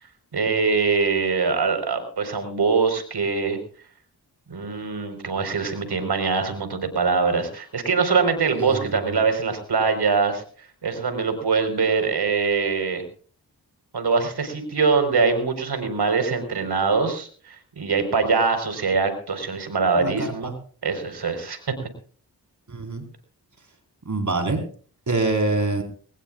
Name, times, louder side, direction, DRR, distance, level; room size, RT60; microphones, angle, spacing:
voice 1, 0.3-3.6 4.5-10.4 10.8-13.0 13.9-20.5 20.8-21.7, right 4 dB, 75° right, 7 dB, 4.6 m, -23 dB
voice 2, 8.6-8.9 20.0-20.5 22.7-23.0 24.0-24.6 25.1-25.8, right 3 dB, 45° right, 5 dB, 4.6 m, -25 dB
22.0 x 20.0 x 2.4 m, 0.43 s
cardioid pair, 50°, 40 cm